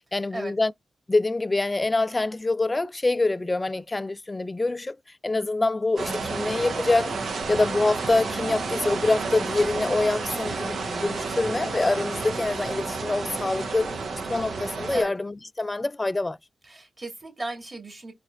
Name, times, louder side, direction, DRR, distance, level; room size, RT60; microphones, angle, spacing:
voice 1, 0.1-0.7 1.1-5.0 5.2-7.1 7.5-14.0 14.3-16.4, left 2 dB, 30° left, 0.3 m, -25 dB
sound 1, 6.0-15.0, right 4 dB, 75° right, 1.0 m, -31 dB
voice 2, 16.6-18.1, right 2 dB, 30° right, 2.2 m, -35 dB
4.1 x 3.2 x 2.5 m
supercardioid pair, 45°, 0 cm